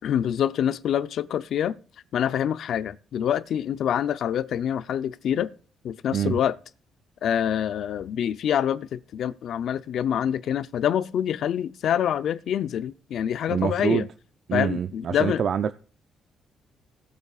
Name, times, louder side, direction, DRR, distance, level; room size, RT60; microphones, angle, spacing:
voice 1, 0.0-1.7 2.1-5.5 5.8-6.5 7.2-14.1 14.5-15.4, left 9 dB, 70° left, 0.6 m, -26 dB
voice 2, 13.5-14.1 14.5-15.7, right 8 dB, 60° right, 0.5 m, -25 dB
18.0 x 8.2 x 2.4 m
cardioid pair, 90°, 0 cm